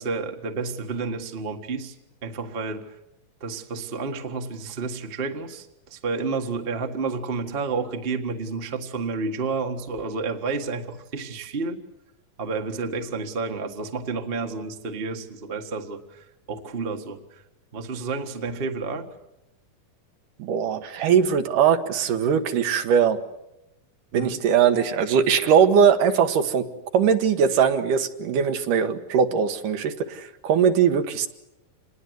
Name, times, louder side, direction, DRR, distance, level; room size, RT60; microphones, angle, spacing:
voice 1, 0.0-2.0 2.2-3.0 3.4-11.8 12.4-17.4 17.7-19.1 24.1-24.4, right 4 dB, 30° right, 4 dB, 1.1 m, -30 dB
voice 2, 20.4-23.2 24.1-26.7 26.9-31.3, right 7 dB, 75° right, 7 dB, 2.9 m, -20 dB
26.5 x 20.0 x 8.0 m, 0.88 s
omnidirectional pair, 3.8 m